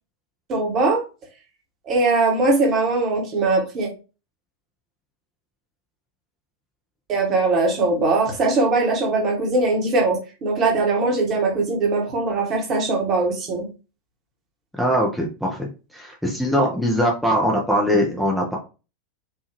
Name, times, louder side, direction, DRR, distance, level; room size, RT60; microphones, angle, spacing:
voice 1, 0.5-1.0 1.9-3.9 7.1-13.7, right 3 dB, 35° right, 1 dB, 1.5 m, -21 dB
voice 2, 14.8-15.7 15.9-18.6, equal, ahead, -2 dB, 0.8 m, -21 dB
4.9 x 2.7 x 3.0 m, 0.32 s
figure-of-eight pair, 90°, 0 cm